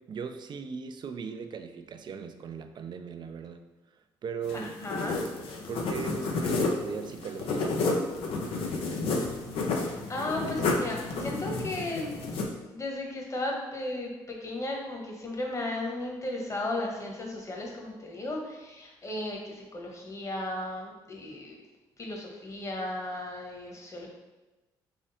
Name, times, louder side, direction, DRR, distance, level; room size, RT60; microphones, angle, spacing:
voice 1, 0.0-3.7 4.2-4.8 5.7-7.7, right 6 dB, 55° right, 8 dB, 0.5 m, -38 dB
sound 1, 4.4-12.4, left 3 dB, 80° left, 0.7 m, -31 dB
voice 2, 4.5-5.2 9.8-12.2 12.7-21.6 22.0-24.1, left 1 dB, 35° left, 0 dB, 1.3 m, -35 dB
3.7 x 3.2 x 4.2 m, 1.1 s
supercardioid pair, 60°, 9 cm